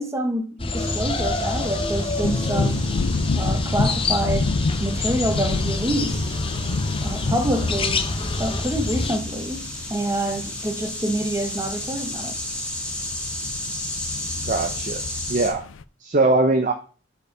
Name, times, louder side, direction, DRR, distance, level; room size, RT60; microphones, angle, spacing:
voice 1, 0.0-2.9 3.3-4.5 4.8-6.4 7.0-8.1 8.4-12.3, right 1 dB, 15° right, 1.3 m, -27 dB
sound 1, 0.6-9.2, left 2 dB, 30° left, 0.9 m, -27 dB
sound 2, 0.7-15.5, left 1 dB, 5° left, 2.4 m, -34 dB
sound 3, 2.2-15.8, left 3 dB, 90° left, 0.5 m, -30 dB
voice 2, 14.5-15.0 15.3-15.6 16.0-16.7, right 2 dB, 45° right, 0.8 m, -21 dB
8.3 x 4.7 x 6.7 m
head